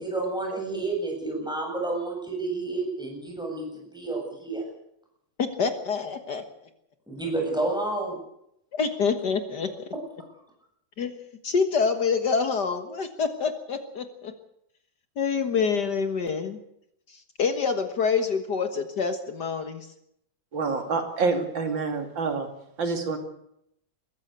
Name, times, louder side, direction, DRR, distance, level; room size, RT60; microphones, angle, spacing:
voice 1, 0.0-3.7 3.9-4.6 7.1-8.2, right 2 dB, ahead, 0 dB, 7.8 m, -30 dB
voice 2, 5.4-6.4 8.7-9.9 11.0-11.2 11.4-14.3 15.2-16.6 17.4-19.9, left 5 dB, 60° left, 8 dB, 2.0 m, -26 dB
voice 3, 20.5-22.5 22.8-23.2, right 4 dB, 75° right, 6 dB, 3.1 m, -27 dB
22.0 x 15.0 x 8.2 m, 0.76 s
omnidirectional pair, 2.1 m